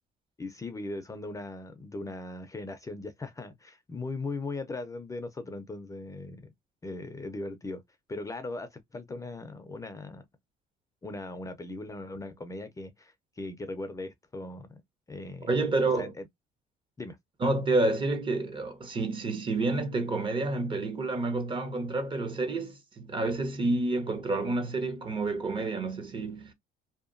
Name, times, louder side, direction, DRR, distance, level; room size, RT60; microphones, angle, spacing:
voice 1, 0.4-6.5 6.8-7.8 8.1-10.2 11.0-14.8 15.1-15.6 15.9-16.3 17.0-17.2, left 2 dB, 20° left, 0.5 m, -39 dB
voice 2, 15.5-16.1 17.4-26.5, right 2 dB, 30° right, 0.7 m, -29 dB
2.8 x 2.2 x 2.4 m
cardioid pair, 110°, 17 cm